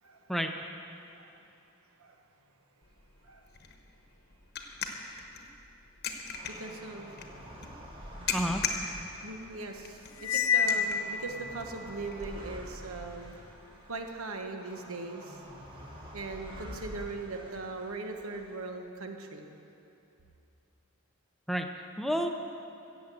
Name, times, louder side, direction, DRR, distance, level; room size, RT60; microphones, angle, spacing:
sound 1, 2.8-14.1, left 5 dB, 45° left, 1.1 m, -41 dB
sound 2, 6.3-18.7, equal, 20° right, 1.5 m, -48 dB
voice 1, 6.5-7.5 7.8-7.9 9.2-13.4 13.9-15.4 16.1-19.5, right 3 dB, 70° right, 4 dB, 1.2 m, -40 dB
voice 2, 8.3-8.6 21.5-22.3, equal, ahead, 4 dB, 0.6 m, -30 dB
Cymbal, 10.2-11.7, left 6 dB, 60° left, 0.5 m, -28 dB
15.5 x 7.4 x 7.6 m, 2.8 s
head